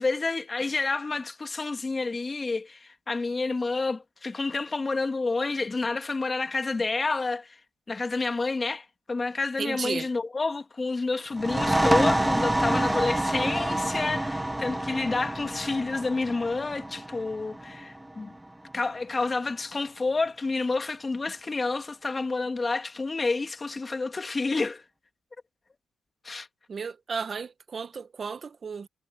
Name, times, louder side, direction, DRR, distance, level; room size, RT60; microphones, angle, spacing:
voice 1, 0.0-7.6 7.9-18.4 18.7-24.8 26.2-26.5, left 3 dB, 30° left, 2.6 m, -29 dB
voice 2, 9.6-10.1 26.7-28.9, right 5 dB, 45° right, 1.6 m, -34 dB
sound 1, 11.3-18.7, right 1 dB, 10° right, 1.5 m, -28 dB
supercardioid pair, 65°, 0 cm